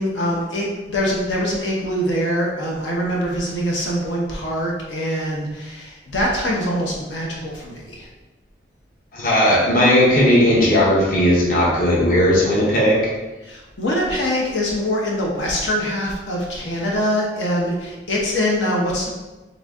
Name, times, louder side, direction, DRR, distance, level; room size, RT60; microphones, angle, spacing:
voice 1, 0.0-8.1 13.4-19.1, equal, 75° left, -2 dB, 0.9 m, -23 dB
voice 2, 9.1-13.1, equal, 45° left, -4 dB, 0.9 m, -16 dB
3.9 x 3.8 x 3.6 m, 1.1 s
head